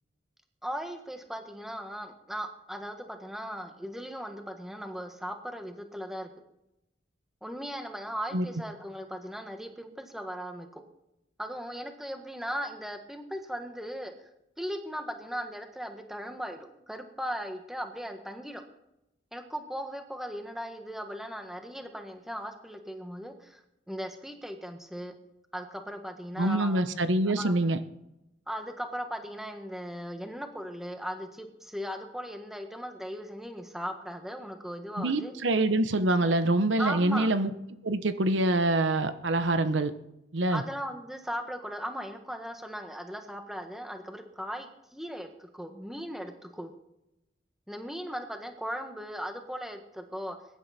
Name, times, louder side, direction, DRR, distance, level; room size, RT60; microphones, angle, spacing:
voice 1, 0.6-6.3 7.4-10.8 11.4-14.1 14.6-16.6 16.9-18.6 19.3-23.6 23.9-25.2 25.5-26.8 27.3-27.5 28.5-35.3 36.8-37.3 40.5-46.7 47.7-50.4, equal, ahead, 5 dB, 1.5 m, -38 dB
voice 2, 26.4-27.8 35.0-37.5 37.8-39.9 40.3-40.6, right 2 dB, 75° right, 11 dB, 1.0 m, -25 dB
22.0 x 11.0 x 4.3 m, 0.87 s
head